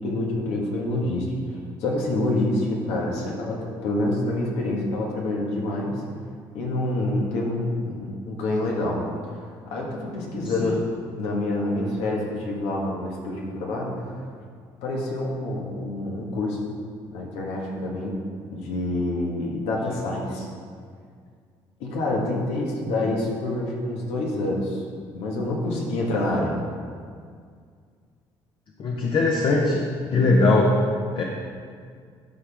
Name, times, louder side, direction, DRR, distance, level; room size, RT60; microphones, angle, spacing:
voice 1, 0.0-6.0 6.5-9.0 9.7-10.8 11.2-14.1 14.8-16.6 17.1-18.2 18.5-20.5 21.8-24.8 25.1-26.5, left 2 dB, 85° left, -2 dB, 1.6 m, -27 dB
voice 2, 28.8-29.8 30.1-30.7 31.1-31.2, left 2 dB, 50° left, -1 dB, 0.9 m, -20 dB
12.5 x 4.4 x 3.5 m, 2.1 s
supercardioid pair, 85°, 10 cm